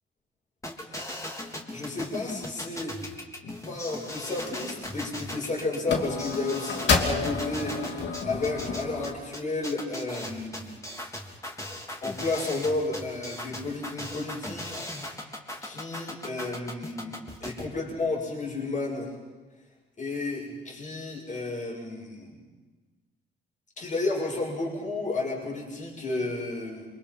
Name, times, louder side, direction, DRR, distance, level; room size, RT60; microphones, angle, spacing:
sound 1, 0.6-17.6, left 1 dB, 15° left, 3.7 m, -38 dB
voice 1, 1.7-3.0 3.6-10.8 12.0-15.3 15.6-19.1 20.0-22.4 23.8-26.9, left 2 dB, 40° left, -2 dB, 7.4 m, -32 dB
sound 2, 3.4-3.7 4.5-4.6 4.9-5.5 5.9-9.1, left 4 dB, 60° left, 3.1 m, -30 dB
27.0 x 25.0 x 5.8 m, 1.3 s
cardioid pair, 90°, 20 cm